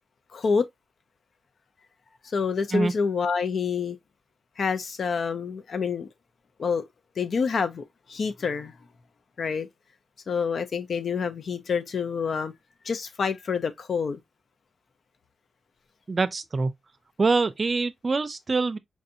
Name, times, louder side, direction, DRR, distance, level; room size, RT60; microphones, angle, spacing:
voice 1, 0.3-0.7 2.3-4.0 4.6-6.1 6.6-6.8 7.2-8.7 9.4-9.7 10.3-12.5 12.8-14.2, left 5 dB, 65° left, 0.6 m, -27 dB
voice 2, 16.1-16.7 17.2-18.8, right 3 dB, 45° right, 0.5 m, -24 dB
4.7 x 2.6 x 2.6 m
cardioid pair, 75°, 0 cm